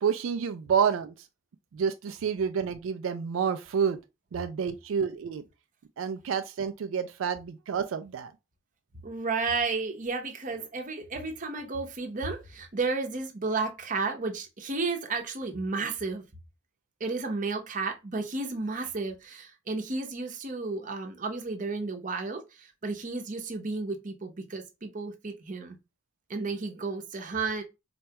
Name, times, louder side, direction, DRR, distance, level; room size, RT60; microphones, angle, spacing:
voice 1, 0.0-1.1 1.7-4.0 4.3-5.4 6.0-8.3, right 7 dB, 85° right, 0.3 m, -29 dB
voice 2, 9.0-16.2 17.0-25.8 26.3-27.6, right 3 dB, 40° right, 0.8 m, -32 dB
4.3 x 2.2 x 2.8 m
head